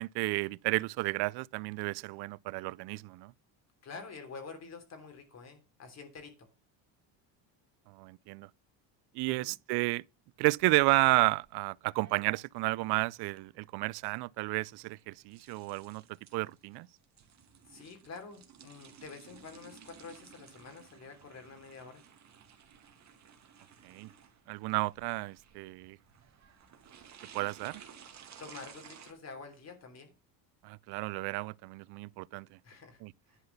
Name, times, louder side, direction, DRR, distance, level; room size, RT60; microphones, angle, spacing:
voice 1, 0.0-3.3 7.9-8.5 9.1-10.0 10.4-16.0 16.3-16.9 23.8-24.1 24.5-26.0 27.3-27.8 30.6-32.6 33.0-33.1, right 23 dB, 60° right, 0.5 m, -32 dB
voice 2, 3.8-6.4 9.2-9.5 17.7-22.0 28.4-30.1 32.6-33.0 33.3-33.4, left 4 dB, 35° left, 3.2 m, -48 dB
sound 1, 10.4-29.1, right 7 dB, 35° right, 2.4 m, -56 dB
11.5 x 5.7 x 6.8 m
cardioid pair, 135°, 45 cm